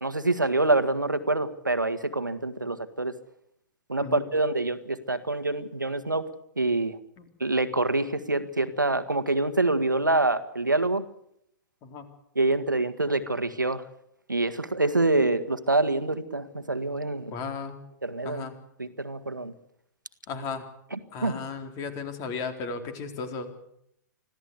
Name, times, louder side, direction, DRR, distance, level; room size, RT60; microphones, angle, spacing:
voice 1, 0.0-3.1 3.9-6.3 6.6-7.0 7.4-11.0 12.4-13.8 14.3-17.3 18.0-18.5 18.8-19.5 20.9-21.4, right 2 dB, 90° right, 11 dB, 1.7 m, -26 dB
voice 2, 17.3-17.8 18.2-18.5 20.3-20.6 21.1-23.6, left 5 dB, 35° left, 7 dB, 4.0 m, -35 dB
25.5 x 16.0 x 8.3 m, 0.75 s
figure-of-eight pair, 105°, 10 cm